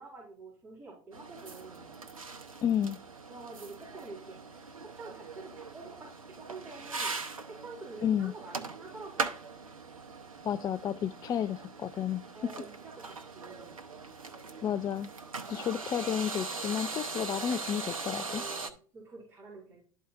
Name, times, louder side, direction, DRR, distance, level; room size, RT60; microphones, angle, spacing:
voice 1, 0.0-1.9 3.3-9.3 12.3-13.7 18.3-19.8, right 3 dB, 15° right, -6 dB, 3.9 m, -48 dB
sound 1, 1.1-18.7, right 4 dB, 85° right, 0.8 m, -41 dB
voice 2, 2.6-3.0 8.0-8.3 10.4-12.5 14.6-15.1 15.5-18.4, left 9 dB, 20° left, 12 dB, 0.3 m, -31 dB
12.5 x 4.4 x 2.5 m, 0.42 s
figure-of-eight pair, 80°, 17 cm